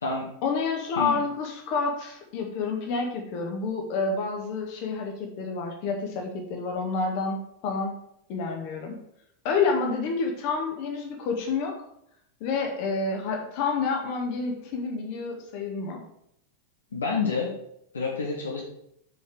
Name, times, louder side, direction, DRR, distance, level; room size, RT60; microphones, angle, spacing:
voice 1, 0.4-7.9 8.3-9.0 9.4-11.7 12.4-16.0, left 4 dB, 45° left, 2 dB, 1.7 m, -29 dB
voice 2, 16.9-17.5 17.9-18.6, left 4 dB, 70° left, -1 dB, 1.3 m, -28 dB
6.5 x 5.1 x 6.0 m, 0.74 s
figure-of-eight pair, 90°, 0 cm